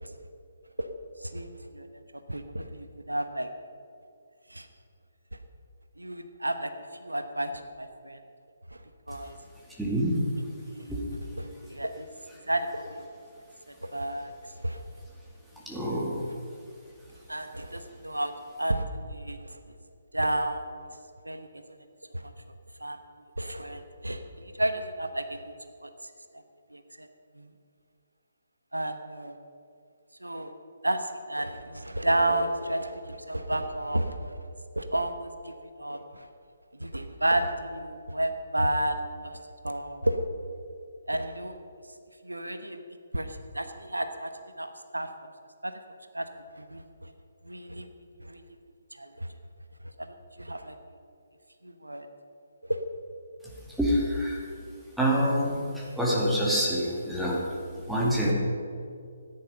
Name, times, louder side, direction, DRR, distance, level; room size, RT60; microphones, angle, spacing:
voice 1, 2.3-3.5 4.5-4.7 6.0-6.7 7.0-7.5 7.8-8.2 9.1-9.3 10.6-11.0 11.3-12.1 12.5-13.1 13.9-14.3 14.6-14.8 17.3-18.3 18.6-19.6 20.1-20.6 21.2-21.5 22.1-22.2 22.8-23.0 23.4-25.4 25.8-25.9 26.7-27.1 27.4-27.5 28.7-29.4 30.2-30.5 30.8-34.3 34.8-36.3 36.8-39.3 39.6-40.2 41.1-41.6 42.2-42.8 43.1-45.1 45.6-45.8 46.1-46.3 46.6-46.8 47.5-47.9 48.2-48.4 49.0-49.3 50.0-50.1 50.4-50.7 51.6-52.1 52.7-52.8, right 1 dB, 80° right, 8 dB, 1.0 m, -31 dB
voice 2, 9.8-10.3 10.9-11.0 15.7-16.4 53.8-54.4 55.0-57.6 57.9-58.3, equal, ahead, -5 dB, 2.1 m, -26 dB
14.0 x 9.9 x 5.5 m, 2.4 s
figure-of-eight pair, 140°, 0 cm